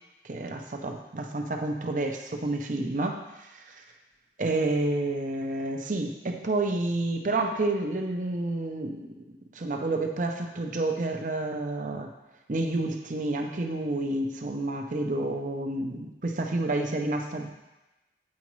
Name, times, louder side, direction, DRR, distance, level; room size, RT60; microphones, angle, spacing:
voice 1, 0.2-3.8 4.4-9.1 9.5-12.1 12.5-17.5, right 2 dB, 45° right, 3 dB, 0.6 m, -29 dB
8.4 x 5.0 x 3.1 m, 1.0 s
head